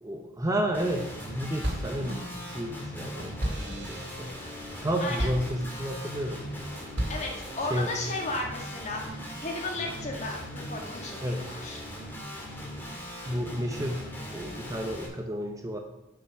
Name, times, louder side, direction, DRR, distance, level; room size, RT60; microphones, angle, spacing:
voice 1, 0.0-4.4 4.8-6.5 7.7-7.9 11.2-11.5 13.3-14.0 14.3-15.8, equal, 20° right, 3 dB, 0.8 m, -31 dB
Guitar, 0.7-15.1, equal, 10° left, 1.9 m, -40 dB
sound 1, 0.8-1.3 1.6-6.1 6.5-7.5, right 1 dB, 65° right, 2.4 m, -35 dB
voice 2, 7.1-11.8, left 2 dB, 35° left, 0 dB, 1.7 m, -35 dB
8.1 x 5.6 x 6.2 m, 0.92 s
head